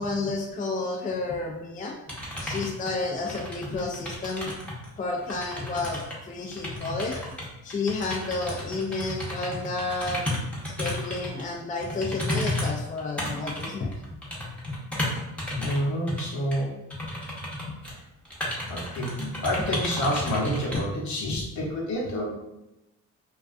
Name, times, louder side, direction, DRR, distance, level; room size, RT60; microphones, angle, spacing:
voice 1, 0.0-1.9 2.4-4.5 5.0-7.2 7.6-10.2 10.8-13.9 20.7-20.9 21.3-21.4, left 3 dB, 25° left, 0 dB, 0.4 m, -31 dB
sound 1, 2.1-4.9 5.2-11.4 11.8-15.8 16.1-16.2 16.5-16.6 16.9-18.0 18.3-20.8, left 1 dB, 5° left, 0.8 m, -33 dB
voice 2, 15.6-16.8 18.7-22.2, equal, 65° left, -2 dB, 0.9 m, -29 dB
2.4 x 2.3 x 2.4 m, 0.93 s
cardioid pair, 80°, 31 cm